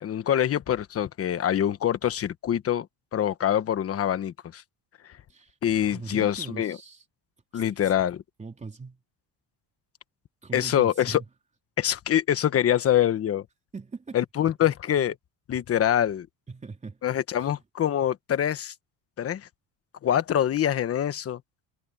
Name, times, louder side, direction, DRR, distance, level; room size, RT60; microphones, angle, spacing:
voice 1, 0.0-2.9 3.1-4.6 5.6-6.8 7.5-8.2 10.5-11.2 11.8-13.4 14.1-15.2 15.5-16.3 17.0-18.7 19.2-19.5 20.0-21.4, left 10 dB, 35° left, 1.2 m, -25 dB
voice 2, 5.9-7.0 7.5-7.9 8.4-9.0 10.4-11.3 13.7-14.2 14.6-14.7 16.5-17.0 17.4-17.6, right 4 dB, 20° right, 3.6 m, -40 dB
cardioid pair, 150°, 39 cm